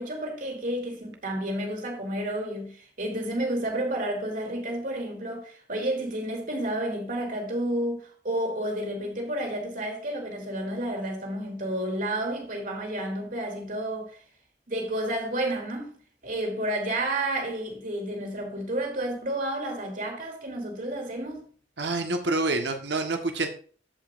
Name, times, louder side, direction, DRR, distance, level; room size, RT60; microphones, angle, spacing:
voice 1, 0.0-14.2 14.7-15.9 16.2-21.4, right 1 dB, 50° right, 2.8 m, -31 dB
voice 2, 21.8-23.5, right 2 dB, 70° right, 1.5 m, -27 dB
15.0 x 5.4 x 2.6 m
head